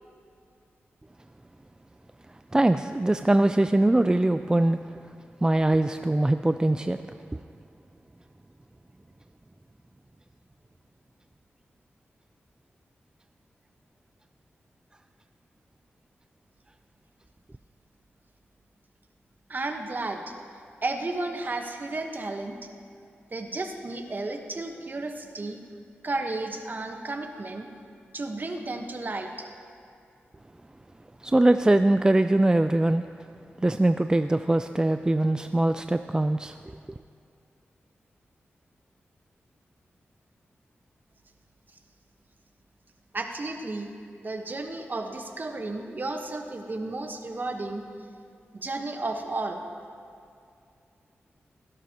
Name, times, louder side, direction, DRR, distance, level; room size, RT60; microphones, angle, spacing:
voice 1, 2.5-4.8 5.4-7.0 31.2-33.0 33.6-36.5, right 1 dB, 15° right, 9 dB, 0.3 m, -22 dB
voice 2, 19.5-20.3 20.8-22.6 23.3-25.6 26.0-27.7 28.1-29.5 43.1-43.9 44.2-47.8 48.5-49.6, right 2 dB, 45° right, 4 dB, 1.2 m, -33 dB
16.5 x 12.5 x 2.9 m, 2.4 s
cardioid pair, 55°, 5 cm